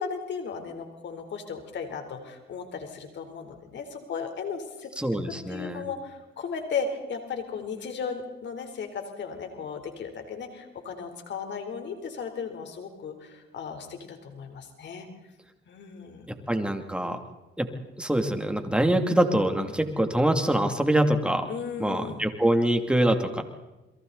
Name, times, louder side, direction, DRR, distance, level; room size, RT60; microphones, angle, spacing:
voice 1, 0.0-4.9 5.5-15.1 15.7-16.3 19.7-19.8 21.5-22.3, left 5 dB, 65° left, 6 dB, 3.9 m, -36 dB
voice 2, 5.0-5.8 16.3-17.2 17.6-17.7 18.0-21.5 21.8-23.4, right 1 dB, 5° right, 5 dB, 2.8 m, -24 dB
29.5 x 22.5 x 4.1 m, 1.1 s
cardioid pair, 90°, 20 cm